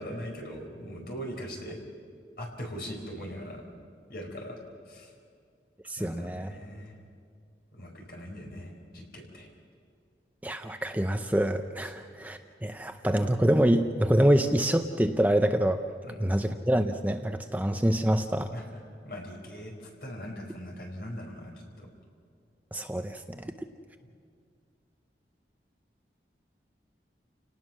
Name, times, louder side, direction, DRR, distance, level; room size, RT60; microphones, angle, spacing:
voice 1, 0.0-1.8 2.4-3.6 4.1-4.6 4.8-5.1 6.0-6.9 7.7-9.5 11.8-11.9 16.0-16.2 18.5-18.8 19.0-21.9 24.0-24.1, equal, 55° left, 0 dB, 5.1 m, -40 dB
voice 2, 5.8-6.5 10.4-15.8 16.2-18.5 22.7-23.5, right 1 dB, 10° right, 6 dB, 0.6 m, -26 dB
30.0 x 19.0 x 6.2 m, 2.2 s
head